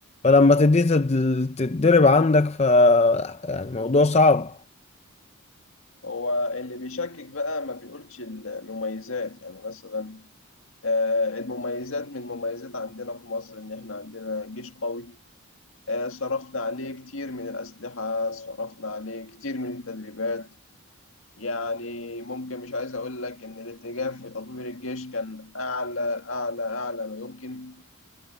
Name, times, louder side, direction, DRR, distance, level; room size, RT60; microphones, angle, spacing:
voice 1, 0.2-4.6, left 3 dB, 30° left, 0.5 m, -19 dB
voice 2, 6.0-10.3 10.8-15.2 15.9-20.5 21.4-27.8, left 3 dB, 70° left, 1.9 m, -31 dB
head